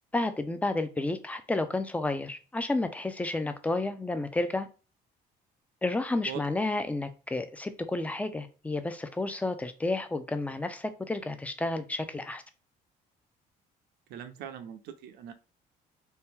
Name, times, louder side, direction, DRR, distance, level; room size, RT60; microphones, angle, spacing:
voice 1, 0.1-4.7 5.8-12.4, left 2 dB, 10° left, 9 dB, 0.4 m, -31 dB
voice 2, 14.1-15.3, right 9 dB, 75° right, 8 dB, 0.5 m, -41 dB
2.8 x 2.1 x 3.5 m, 0.34 s
cardioid pair, 110°, 17 cm